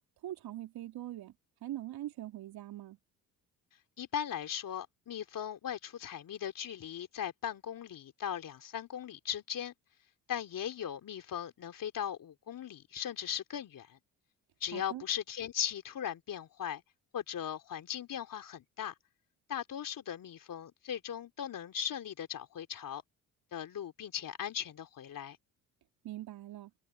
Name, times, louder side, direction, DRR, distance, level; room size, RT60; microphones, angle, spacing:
voice 1, 0.2-1.3 1.6-3.0 14.7-15.0 26.0-26.7, right 14 dB, 65° right, 3.7 m, -42 dB
voice 2, 4.0-9.7 10.3-14.0 14.6-16.8 17.1-18.9 19.5-23.0 23.5-25.4, left 9 dB, 55° left, 3.3 m, -38 dB
hypercardioid pair, 55°, 40 cm